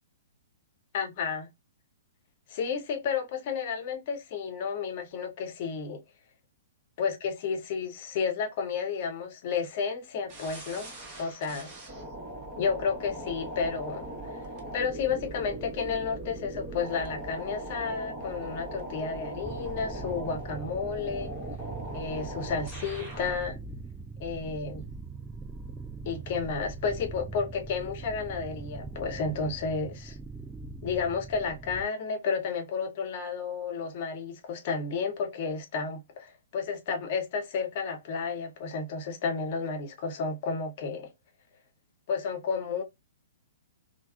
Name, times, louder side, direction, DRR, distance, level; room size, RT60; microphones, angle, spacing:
voice 1, 0.9-1.5 2.5-6.0 7.0-10.9 11.2-11.7 12.6-14.1 14.7-21.3 21.9-23.6 24.2-24.8 26.1-30.2 30.8-41.1 42.1-42.8, left 5 dB, 45° left, 0.7 m, -32 dB
sound 1, 10.3-23.4, right 1 dB, 25° right, 0.9 m, -40 dB
sound 2, 19.4-31.8, right 4 dB, 5° right, 0.3 m, -41 dB
3.3 x 2.0 x 2.3 m
figure-of-eight pair, 110°, 0 cm